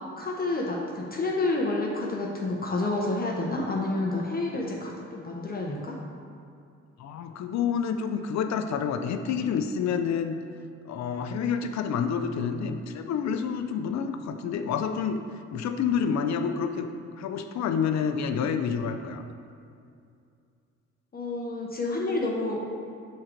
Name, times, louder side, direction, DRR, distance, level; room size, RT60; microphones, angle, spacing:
voice 1, 0.2-6.0 21.1-22.8, left 2 dB, 30° left, -2 dB, 0.7 m, -29 dB
voice 2, 7.0-10.3 10.9-15.2 15.5-16.9 17.2-19.2, left 7 dB, 65° left, 7 dB, 0.5 m, -28 dB
6.4 x 3.8 x 4.4 m, 2.4 s
cardioid pair, 90°, 30 cm